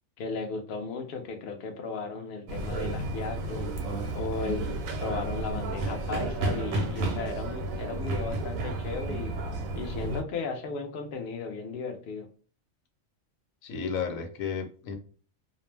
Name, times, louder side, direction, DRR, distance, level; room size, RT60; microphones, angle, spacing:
voice 1, 0.2-3.7 4.1-4.6 5.0-9.3 9.7-12.3, left 4 dB, 65° left, 4 dB, 0.6 m, -35 dB
sound 1, 2.5-10.2, right 2 dB, 90° right, 1.0 m, -32 dB
voice 2, 13.6-15.0, left 6 dB, 80° left, 4 dB, 1.0 m, -33 dB
2.5 x 2.0 x 3.2 m, 0.40 s
omnidirectional pair, 1.4 m